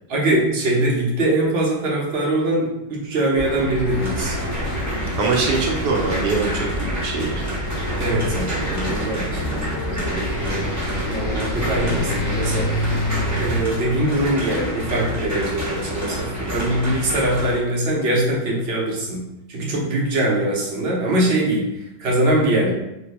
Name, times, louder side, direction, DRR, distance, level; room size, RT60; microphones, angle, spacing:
voice 1, 0.1-4.4 8.0-12.7 13.3-21.7 22.0-22.7, right 1 dB, 55° right, -3 dB, 0.7 m, -22 dB
sound 1, 3.3-13.6, equal, 45° left, 1.4 m, -27 dB
sound 2, 3.9-17.6, equal, 15° right, 0.6 m, -28 dB
voice 2, 5.2-7.5 16.4-16.7, right 4 dB, 75° right, -1 dB, 1.1 m, -23 dB
4.2 x 2.2 x 2.9 m, 0.87 s
omnidirectional pair, 2.0 m